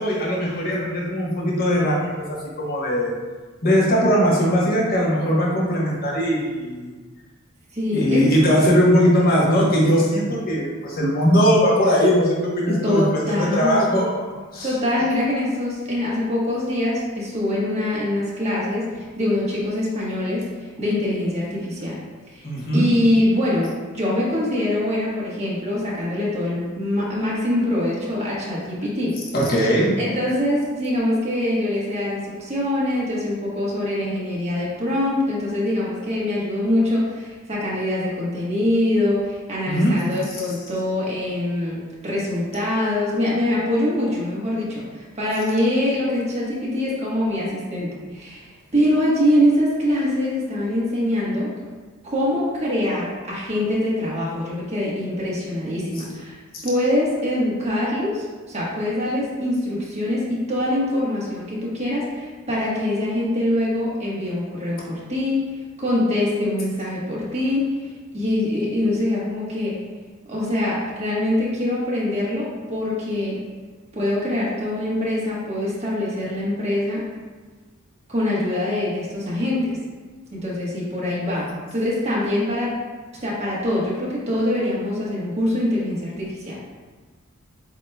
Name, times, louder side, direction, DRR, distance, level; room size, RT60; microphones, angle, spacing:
voice 1, 0.0-2.1 2.6-3.1 3.6-6.9 7.9-14.1 14.5-14.7 22.4-22.9 29.3-29.9 39.7-39.9 55.9-56.1, equal, 50° left, -4 dB, 1.1 m, -19 dB
voice 2, 7.7-8.3 12.7-14.0 14.6-20.5 20.8-21.9 22.3-22.4 22.7-29.2 30.0-41.8 42.0-48.4 48.7-51.5 52.0-56.4 56.6-65.5 65.8-67.6 68.1-69.7 70.3-73.4 73.9-77.1 78.1-79.8 80.3-82.8 83.2-86.6, left 1 dB, 35° right, -6 dB, 1.2 m, -24 dB
8.0 x 2.9 x 2.2 m, 1.4 s
head